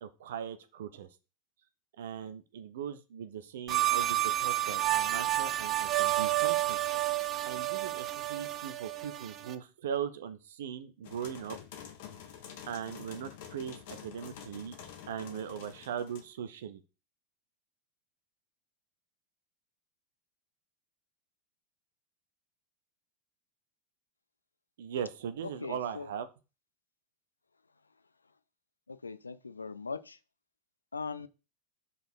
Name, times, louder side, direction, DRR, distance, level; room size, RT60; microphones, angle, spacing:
voice 1, 0.0-1.1 2.0-6.8 7.4-11.6 12.7-14.8 15.1-16.8 24.8-26.3, right 8 dB, 70° right, 0.7 m, -39 dB
sound 1, 3.7-9.5, right 15 dB, 35° right, 0.6 m, -30 dB
sound 2, 11.0-16.3, left 9 dB, 60° left, 1.3 m, -48 dB
voice 2, 25.6-26.1 28.9-30.2 30.9-31.3, left 4 dB, 90° left, 0.4 m, -40 dB
5.1 x 4.2 x 4.5 m
hypercardioid pair, 90°, 0 cm